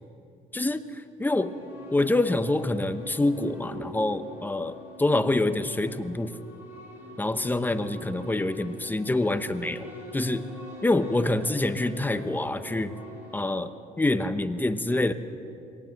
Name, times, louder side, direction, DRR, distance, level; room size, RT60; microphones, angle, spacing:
voice 1, 0.5-1.5 1.9-6.4 7.2-10.5 10.8-13.0 13.3-15.1, left 2 dB, 10° left, 10 dB, 0.9 m, -26 dB
sound 1, 1.2-13.5, left 1 dB, 15° right, 6.9 m, -44 dB
23.5 x 18.0 x 7.8 m, 2.7 s
cardioid pair, 110°, 17 cm